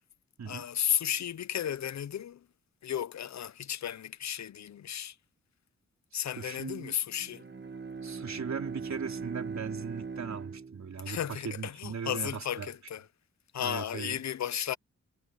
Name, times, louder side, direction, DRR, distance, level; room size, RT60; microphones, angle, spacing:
voice 1, 0.5-2.4 2.8-5.1 6.1-7.4 11.1-13.0 13.5-14.8, left 10 dB, 65° left, 0.6 m, -34 dB
voice 2, 6.1-6.9 8.0-12.7 13.6-14.2, right 6 dB, 70° right, 3.8 m, -39 dB
Bowed string instrument, 7.1-11.5, right 5 dB, 35° right, 1.5 m, -40 dB
wide cardioid pair, 150°, 29 cm